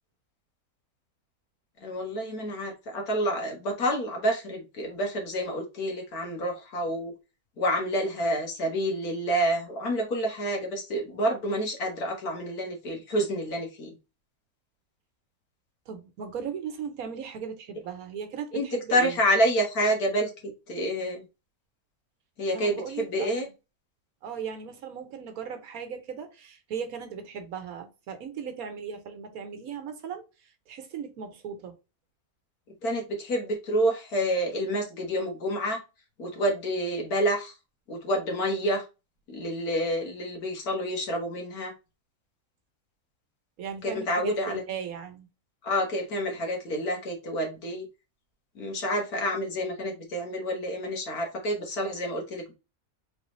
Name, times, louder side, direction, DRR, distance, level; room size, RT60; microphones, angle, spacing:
voice 1, 1.8-7.1 7.6-14.0 18.5-21.2 22.4-23.5 32.8-35.8 36.2-37.5 37.9-38.8 39.3-41.7 43.8-44.6 45.6-47.9 48.6-52.5, equal, 90° left, 1.9 m, -28 dB
voice 2, 15.9-19.2 22.5-23.5 24.2-31.7 43.6-45.3, right 7 dB, 75° right, 1.4 m, -37 dB
4.0 x 3.4 x 3.0 m
omnidirectional pair, 1.5 m